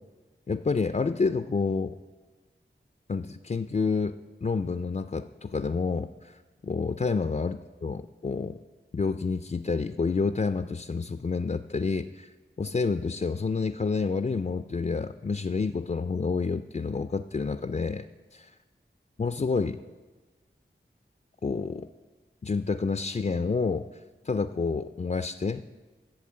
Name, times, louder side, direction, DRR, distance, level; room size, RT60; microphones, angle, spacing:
voice 1, 0.5-2.0 3.1-8.5 8.9-18.1 18.3-18.5 19.2-19.8 21.4-21.9 22.4-23.9 24.2-25.6, left 4 dB, 35° left, 10 dB, 0.4 m, -29 dB
12.0 x 7.4 x 7.5 m, 1.3 s
wide cardioid pair, 40°, 21 cm